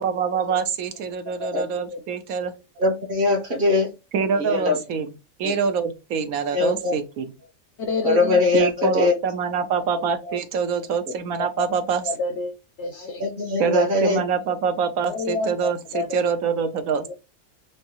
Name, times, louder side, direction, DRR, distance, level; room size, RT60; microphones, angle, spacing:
voice 1, 0.0-2.5 4.1-5.1 5.4-7.3 8.5-12.1 13.6-17.1, right 6 dB, 80° right, 9 dB, 1.2 m, -25 dB
voice 2, 2.8-3.9 4.4-4.7 6.5-6.9 8.0-9.1 13.2-14.2, left 3 dB, 40° right, 2 dB, 1.4 m, -21 dB
voice 3, 7.8-8.4 8.8-9.0 10.3-10.4 12.1-13.2 15.1-16.2, left 3 dB, 65° left, 8 dB, 0.7 m, -29 dB
6.1 x 2.1 x 2.9 m, 0.26 s
omnidirectional pair, 1.5 m